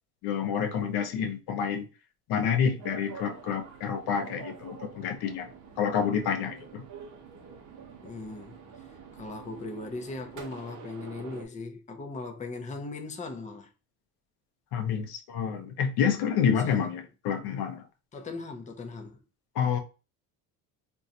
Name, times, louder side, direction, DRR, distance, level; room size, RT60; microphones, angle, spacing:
voice 1, 0.2-1.9 2.3-5.5 5.8-6.8 14.7-17.8 19.6-19.8, left 7 dB, 75° left, 0.7 m, -28 dB
sound 1, 2.8-11.5, right 6 dB, 50° right, 0.8 m, -47 dB
voice 2, 8.0-8.5 9.1-13.7 16.6-16.9 18.1-19.2, left 3 dB, 20° left, 0.6 m, -39 dB
2.5 x 2.3 x 4.1 m
cardioid pair, 110°, 39 cm